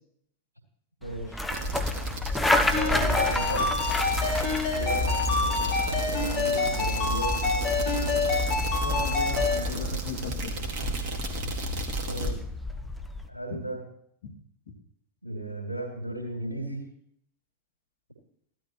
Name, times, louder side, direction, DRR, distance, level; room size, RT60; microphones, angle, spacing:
sound 1, 1.0-13.3, left 1 dB, 5° left, 1.0 m, -32 dB
voice 1, 1.0-1.5 2.6-3.7 4.7-8.2 12.1-12.4 13.3-13.8 15.2-16.8, right 1 dB, 85° right, 1 dB, 3.1 m, -36 dB
sound 2, 1.5-12.3, equal, 45° right, 2.2 m, -32 dB
Ringtone, 2.7-9.6, left 3 dB, 40° left, 4.5 m, -28 dB
voice 2, 8.8-10.6 13.5-13.7 14.2-14.3, left 4 dB, 55° left, 0 dB, 2.5 m, -37 dB
15.5 x 12.0 x 3.2 m, 0.69 s
figure-of-eight pair, 90°, 0 cm